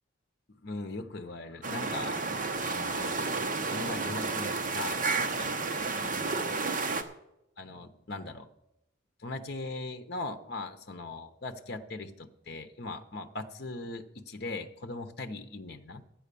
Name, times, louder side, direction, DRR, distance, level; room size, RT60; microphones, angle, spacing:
voice 1, 0.6-2.3 2.7-3.2 3.7-5.5 6.2-6.4 7.6-8.5 9.2-16.0, left 2 dB, 50° left, 7 dB, 0.9 m, -40 dB
sound 1, 1.6-7.0, right 3 dB, 40° right, 0.9 m, -31 dB
11.5 x 9.1 x 6.9 m, 0.84 s
head